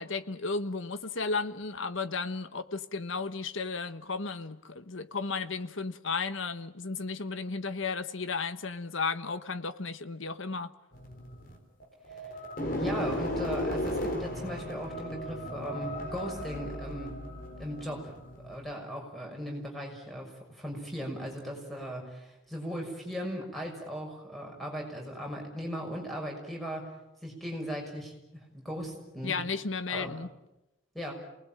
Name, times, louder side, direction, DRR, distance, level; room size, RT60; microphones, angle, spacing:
voice 1, 0.0-10.7 29.2-30.3, left 4 dB, 75° left, 1.3 m, -34 dB
sound 1, 10.9-18.7, left 1 dB, 45° left, 3.9 m, -35 dB
voice 2, 12.8-17.2 17.6-18.1 18.4-26.9 27.2-29.4 29.9-30.1 30.9-31.1, equal, ahead, 6.3 m, -38 dB
28.5 x 20.0 x 9.0 m
head